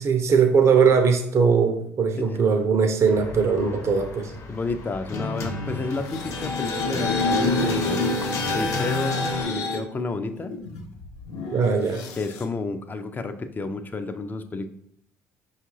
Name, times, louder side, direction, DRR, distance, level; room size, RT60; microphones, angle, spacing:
voice 1, 0.0-4.3 11.5-12.0, right 5 dB, 40° right, 5 dB, 0.5 m, -20 dB
sound 1, 3.1-9.4, left 3 dB, 45° left, 0.9 m, -31 dB
voice 2, 4.5-8.0 8.5-9.2 9.5-10.5 12.2-14.7, left 3 dB, 25° left, 9 dB, 0.4 m, -31 dB
sound 2, 5.9-9.8 10.4-12.4, left 2 dB, 75° left, 0.6 m, -28 dB
5.1 x 2.4 x 3.1 m, 0.72 s
hypercardioid pair, 65°, 7 cm